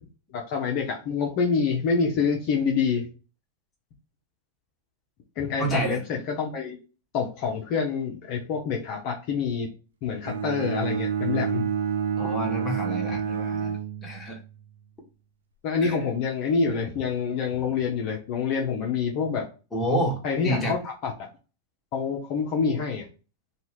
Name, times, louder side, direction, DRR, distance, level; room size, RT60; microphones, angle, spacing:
voice 1, 0.3-3.1 5.4-6.8 7.1-9.7 10.0-11.7 15.6-19.4 20.2-21.3 21.9-23.1, left 5 dB, 50° left, 0 dB, 0.7 m, -27 dB
voice 2, 5.6-6.0 12.2-14.4 15.8-16.0 19.7-20.7, right 1 dB, 15° left, -1 dB, 1.3 m, -29 dB
Bowed string instrument, 10.2-14.5, right 7 dB, 80° right, 0.4 m, -29 dB
2.7 x 2.3 x 3.1 m, 0.34 s
hypercardioid pair, 105°, 0 cm